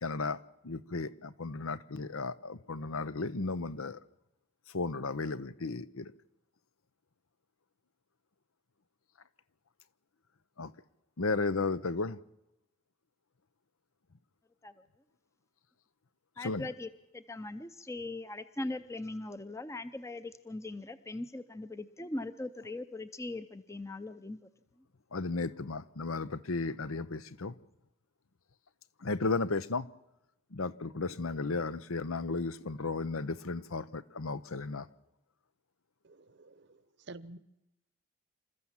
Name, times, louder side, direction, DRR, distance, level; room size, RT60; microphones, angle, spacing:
voice 1, 0.0-4.0 4.7-6.1 10.6-10.7 11.2-12.2 16.4-16.7 25.1-27.5 29.0-29.9 30.5-34.9, left 3 dB, 85° left, 0.9 m, -34 dB
voice 2, 16.4-24.5, left 2 dB, 15° left, 0.7 m, -40 dB
voice 3, 36.0-36.8 37.1-37.4, right 2 dB, 55° right, 0.9 m, -49 dB
27.5 x 14.0 x 7.3 m
head